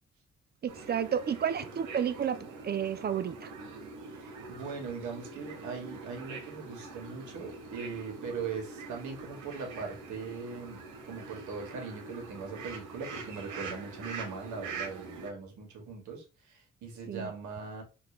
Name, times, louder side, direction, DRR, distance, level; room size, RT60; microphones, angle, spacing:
voice 1, 0.6-2.4 2.6-3.5 17.1-17.3, right 8 dB, 35° right, 0.4 m, -31 dB
sound 1, 0.7-15.3, right 4 dB, 90° right, 1.1 m, -44 dB
voice 2, 4.1-17.8, right 5 dB, 75° right, 1.4 m, -40 dB
3.7 x 2.4 x 3.2 m
cardioid pair, 90°, 30 cm